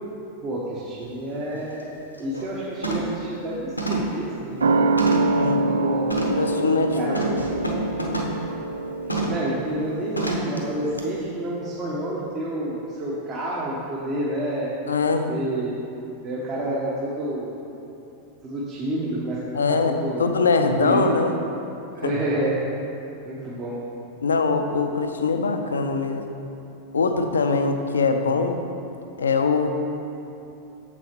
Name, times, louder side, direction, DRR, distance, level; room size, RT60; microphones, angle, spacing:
voice 1, 0.4-1.9 2.2-5.0 5.5-6.1 7.0-7.7 9.1-14.7 15.3-15.8 16.2-17.5 18.4-19.5 20.0-20.3 20.8-21.0 21.9-22.6 23.2-23.8, right 1 dB, 30° right, -6 dB, 1.1 m, -29 dB
sound 1, 1.0-1.1 1.6-1.8 2.2-2.5 2.8-3.2 3.8-5.4 6.1-6.5 7.1-8.4 9.1-9.5 10.2-10.6 11.0-11.1, right 2 dB, 85° left, 0.9 m, -28 dB
sound 2, 4.6-11.7 12.0-12.1, right 2 dB, 70° right, 0.4 m, -25 dB
voice 2, 6.3-7.3 14.9-15.3 19.5-21.3 22.0-22.1 24.2-26.4 26.9-28.6 29.2-29.7, left 4 dB, 70° left, 6 dB, 0.5 m, -22 dB
7.3 x 6.0 x 4.4 m, 2.8 s
figure-of-eight pair, 90°, 0 cm